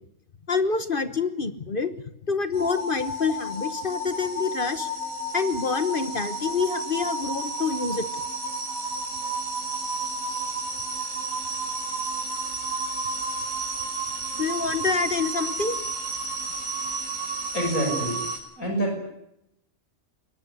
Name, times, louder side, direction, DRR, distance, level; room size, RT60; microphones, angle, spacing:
voice 1, 0.5-1.9 2.3-4.9 5.3-8.1 14.3-15.8, left 4 dB, 45° left, 12 dB, 1.3 m, -27 dB
sound 1, 2.5-18.4, right 2 dB, 80° right, 5.7 m, -31 dB
voice 2, 17.5-18.2 18.6-19.1, equal, 90° left, 3 dB, 6.6 m, -27 dB
22.5 x 18.0 x 9.9 m, 0.80 s
omnidirectional pair, 1.4 m